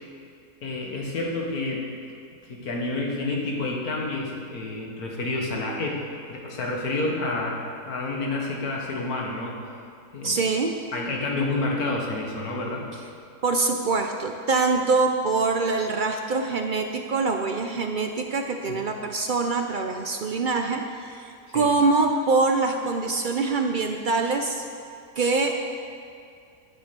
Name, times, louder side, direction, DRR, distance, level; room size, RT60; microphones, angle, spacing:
voice 1, 0.6-1.9 2.5-6.0 6.3-7.6 7.8-9.6 10.1-10.4 10.9-12.9 18.7-18.8 21.5-21.7, left 2 dB, 85° left, -1 dB, 2.0 m, -29 dB
voice 2, 10.2-10.7 13.4-24.6 25.2-25.6, right 3 dB, 65° right, 4 dB, 0.5 m, -24 dB
9.9 x 7.1 x 6.7 m, 2.4 s
omnidirectional pair, 1.6 m